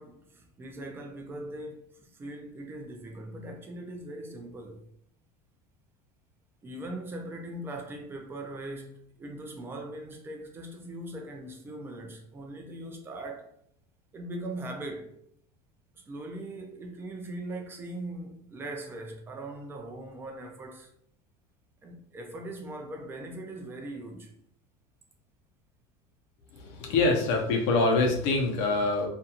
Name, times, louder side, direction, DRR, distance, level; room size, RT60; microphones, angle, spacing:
voice 1, 0.0-4.8 6.6-13.5 14.1-15.2 15.9-20.9 21.8-24.3, right 1 dB, 15° right, 0.4 m, -40 dB
voice 2, 26.5-29.1, left 3 dB, 75° left, 0.7 m, -25 dB
2.5 x 2.3 x 2.8 m
cardioid pair, 160°, 15 cm